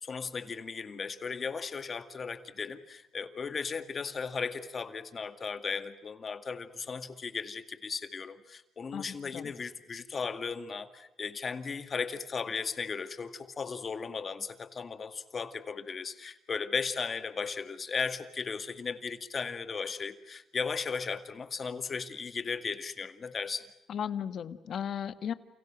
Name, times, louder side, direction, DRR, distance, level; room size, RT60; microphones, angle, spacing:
voice 1, 0.0-23.7, left 5 dB, 40° left, 9 dB, 2.1 m, -36 dB
voice 2, 8.9-9.5 23.9-25.3, left 8 dB, 60° left, 11 dB, 1.5 m, -36 dB
29.5 x 29.5 x 6.3 m, 0.86 s
cardioid pair, 90°, 0 cm